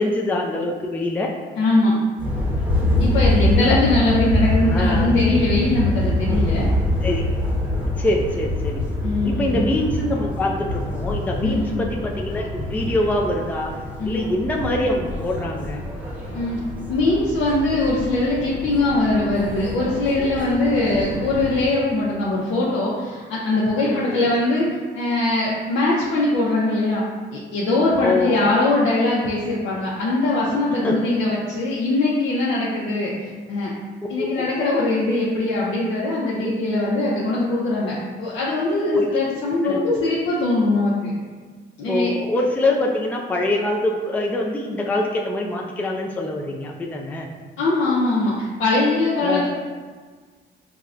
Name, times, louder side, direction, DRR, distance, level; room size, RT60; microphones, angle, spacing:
voice 1, 0.0-1.3 3.6-3.8 4.7-5.2 7.0-7.2 8.0-8.8 9.2-13.7 14.0-15.8 23.8-24.3 28.0-28.5 30.8-31.0 34.2-34.5 38.9-39.2 39.6-39.8 41.9-47.3 49.2-49.5, left 1 dB, 10° left, 0 dB, 0.3 m, -24 dB
voice 2, 1.6-1.9 3.0-6.7 9.0-9.6 11.4-11.7 14.0-14.2 16.3-16.6 16.9-24.7 24.9-27.0 27.3-33.7 34.1-41.1 41.8-42.1 47.6-49.5, left 2 dB, 75° left, -6 dB, 0.6 m, -21 dB
sound 1, 2.2-21.7, left 1 dB, 10° right, 0.8 m, -25 dB
4.5 x 2.1 x 2.4 m, 1.5 s
cardioid pair, 90°, 20 cm